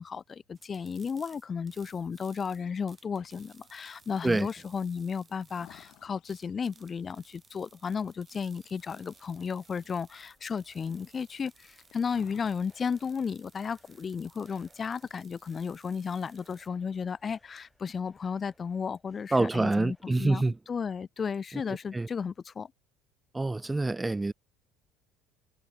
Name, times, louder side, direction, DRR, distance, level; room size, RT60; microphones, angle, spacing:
voice 1, 0.0-22.7, left 6 dB, 35° left, 0.6 m, -34 dB
sound 1, 0.5-16.7, right 5 dB, 30° right, 1.5 m, -60 dB
sound 2, 1.7-16.7, left 16 dB, 65° left, 4.0 m, -63 dB
sound 3, 8.2-20.1, equal, 5° left, 4.4 m, -68 dB
voice 2, 19.3-20.6 21.7-22.1 23.3-24.3, right 2 dB, 15° right, 0.3 m, -27 dB
supercardioid pair, 85°, 0 cm